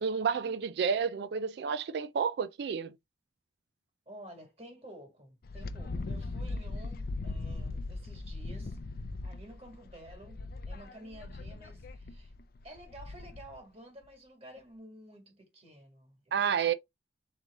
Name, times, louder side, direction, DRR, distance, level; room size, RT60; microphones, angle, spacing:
voice 1, 0.0-2.9 16.3-16.7, right 6 dB, 60° right, 0.3 m, -30 dB
voice 2, 4.1-8.8 9.2-12.3 12.6-16.7, right 1 dB, 35° right, 1.8 m, -51 dB
Wind, 5.4-13.6, left 2 dB, 55° left, 0.5 m, -39 dB
4.0 x 3.2 x 3.5 m
head